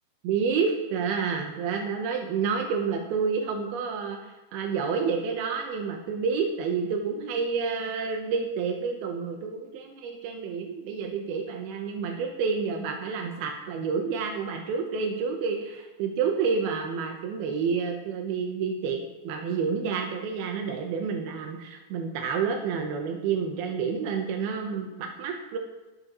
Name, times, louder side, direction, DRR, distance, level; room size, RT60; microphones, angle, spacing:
voice 1, 0.2-25.6, right 5 dB, 75° right, 2 dB, 2.3 m, -29 dB
21.5 x 8.9 x 3.1 m, 1.1 s
omnidirectional pair, 5.7 m